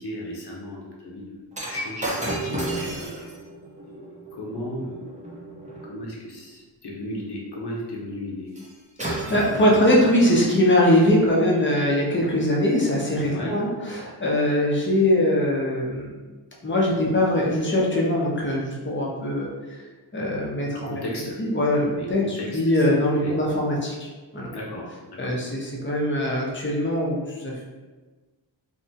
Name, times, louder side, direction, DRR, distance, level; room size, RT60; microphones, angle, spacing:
voice 1, 0.0-1.4 1.6-3.3 3.8-3.9 4.3-5.1 5.8-8.5 13.3-13.6 20.6-21.4 21.9-22.8 23.2-23.4 24.5-25.4, left 1 dB, 55° left, -2 dB, 0.9 m, -35 dB
Shatter, 1.5-5.9 8.6-8.7 9.0-10.5 11.2-11.4, right 2 dB, 15° right, 0.7 m, -33 dB
voice 2, 9.0-16.1 16.6-19.8 20.1-20.8 21.4-24.5 25.2-27.7, left 1 dB, 25° left, -3 dB, 0.8 m, -22 dB
2.7 x 2.3 x 2.7 m, 1.3 s
cardioid pair, 45°, 47 cm